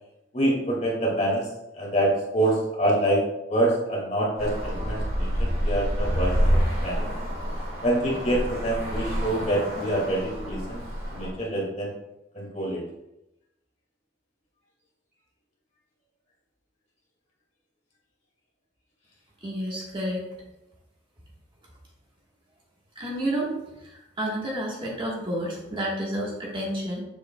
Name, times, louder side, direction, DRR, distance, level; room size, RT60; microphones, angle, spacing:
voice 1, 0.3-1.4 1.7-3.2 3.5-6.3 6.8-7.1 7.8-10.8 11.1-11.9 12.3-12.8, right 1 dB, 40° left, -4 dB, 2.1 m, -26 dB
Traffic noise roadway noise, 4.4-11.3, equal, 50° right, 2.0 m, -28 dB
voice 2, 19.4-20.2 22.9-23.5 23.8-27.0, right 1 dB, 25° right, -4 dB, 1.4 m, -30 dB
7.1 x 6.5 x 2.3 m, 0.92 s
head